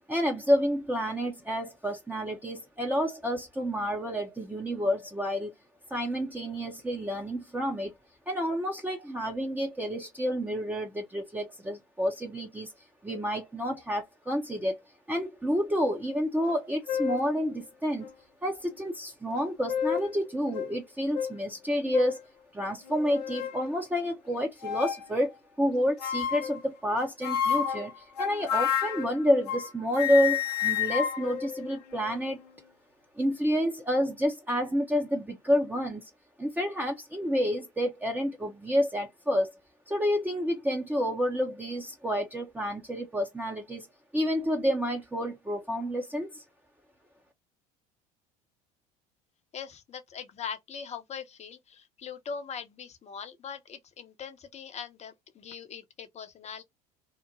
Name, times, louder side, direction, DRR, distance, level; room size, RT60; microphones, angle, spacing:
voice 1, 0.0-5.5 5.9-7.9 8.3-12.7 13.0-14.8 15.1-18.1 18.4-22.2 22.5-32.4 33.2-36.0 36.4-39.5 39.9-43.9 44.1-46.4, equal, 10° right, 0.8 m, -29 dB
sound 1, 16.5-16.6 16.9-17.3 18.0-18.1 19.4-20.1 20.5-20.7 21.1-21.3 21.9-22.2 22.9-23.6 24.6-25.1 26.0-26.6 27.2-29.7 30.0-32.3, left 9 dB, 85° left, 0.6 m, -30 dB
voice 2, 49.5-56.6, left 6 dB, 35° left, 0.8 m, -41 dB
2.9 x 2.1 x 3.9 m
hypercardioid pair, 70°, 20 cm